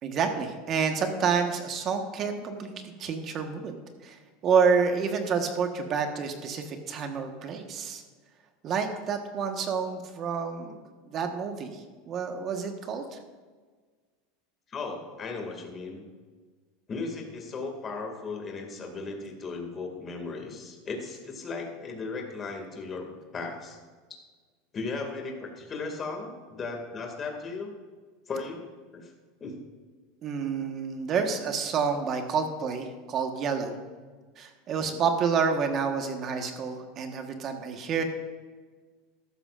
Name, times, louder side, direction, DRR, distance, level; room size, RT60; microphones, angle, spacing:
voice 1, 0.0-8.0 8.6-10.8 11.0-13.2 30.2-33.8 34.4-38.0, right 6 dB, 35° right, 5 dB, 1.3 m, -29 dB
voice 2, 14.7-16.0 16.9-23.1 23.3-23.8 24.7-27.7 28.3-28.6 28.9-29.1 29.4-29.6 34.8-35.0, left 4 dB, 25° left, 2 dB, 2.2 m, -36 dB
14.0 x 12.5 x 2.5 m, 1.4 s
supercardioid pair, 140°, 0 cm